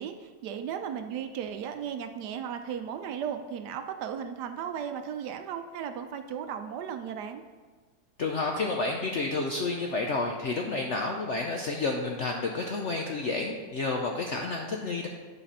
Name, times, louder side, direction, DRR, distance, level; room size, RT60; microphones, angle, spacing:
voice 1, 0.0-7.4, right 8 dB, 75° right, 7 dB, 1.1 m, -36 dB
voice 2, 8.2-15.1, left 3 dB, 65° left, 1 dB, 0.7 m, -30 dB
10.0 x 4.2 x 5.4 m, 1.4 s
omnidirectional pair, 1.9 m